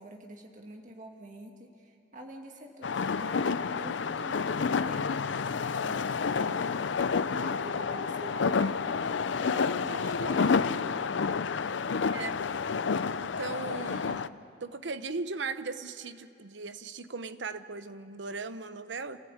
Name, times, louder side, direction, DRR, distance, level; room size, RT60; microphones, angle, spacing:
voice 1, 0.0-8.8 9.4-10.6, right 1 dB, 45° right, 2 dB, 1.8 m, -46 dB
sound 1, 2.8-14.3, left 5 dB, 85° left, 0.5 m, -29 dB
voice 2, 13.2-14.3 14.6-19.2, right 4 dB, 80° right, 12 dB, 0.9 m, -38 dB
28.5 x 15.5 x 8.8 m, 2.6 s
head